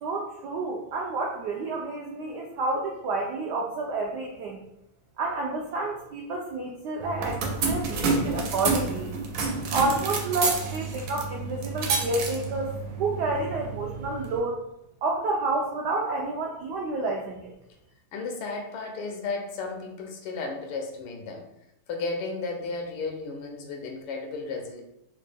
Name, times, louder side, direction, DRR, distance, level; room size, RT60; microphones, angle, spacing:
voice 1, 0.0-4.6 5.2-9.1 9.7-12.7 13.0-14.6 15.0-17.5, right 2 dB, 85° right, -1 dB, 0.9 m, -29 dB
sound 1, 7.0-14.4, right 4 dB, 70° right, 1.2 m, -29 dB
voice 2, 18.1-21.4 21.9-24.8, left 3 dB, 80° left, 2 dB, 1.5 m, -34 dB
4.1 x 2.1 x 3.2 m, 0.80 s
omnidirectional pair, 2.4 m